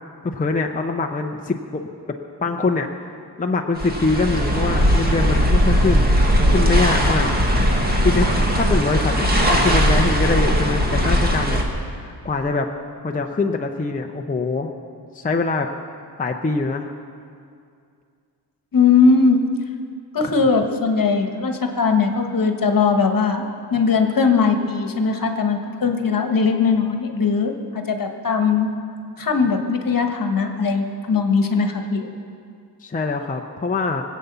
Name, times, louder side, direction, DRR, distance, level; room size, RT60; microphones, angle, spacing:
voice 1, 0.2-6.1 6.4-7.3 8.0-8.3 8.6-11.6 11.9-12.7 13.0-14.7 15.1-15.7 16.2-16.9 32.8-34.0, left 3 dB, 20° left, 2 dB, 0.6 m, -24 dB
sound 1, 3.8-11.6, equal, 25° right, 1.6 m, -18 dB
voice 2, 18.7-19.4 20.1-23.4 23.7-28.7 29.2-32.1, left 5 dB, 55° left, 5 dB, 1.3 m, -19 dB
23.0 x 8.4 x 6.8 m, 2.3 s
wide cardioid pair, 180°, 41 cm